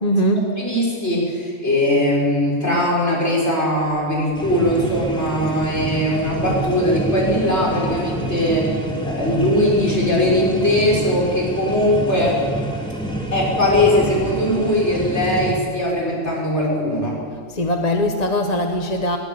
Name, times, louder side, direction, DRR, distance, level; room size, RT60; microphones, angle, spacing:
voice 1, 0.0-0.5 17.5-19.2, equal, 30° left, 4 dB, 1.3 m, -20 dB
voice 2, 0.6-8.7 9.0-12.4 13.3-17.2, left 1 dB, 60° left, -3 dB, 7.2 m, -20 dB
sound 1, 4.3-15.5, right 1 dB, 5° left, 3.9 m, -27 dB
21.0 x 18.5 x 8.9 m, 2.1 s
omnidirectional pair, 1.3 m